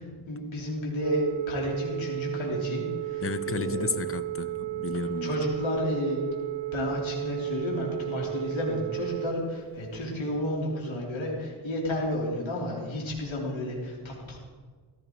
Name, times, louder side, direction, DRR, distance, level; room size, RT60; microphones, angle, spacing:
voice 1, 0.3-3.9 5.2-6.2 6.7-14.4, left 1 dB, 80° left, 3.6 m, -31 dB
Telephone, 1.0-9.3, right 19 dB, 75° right, 0.6 m, -34 dB
voice 2, 3.2-5.4, left 5 dB, 30° left, 0.7 m, -32 dB
15.5 x 13.5 x 4.6 m
wide cardioid pair, 105°, 46 cm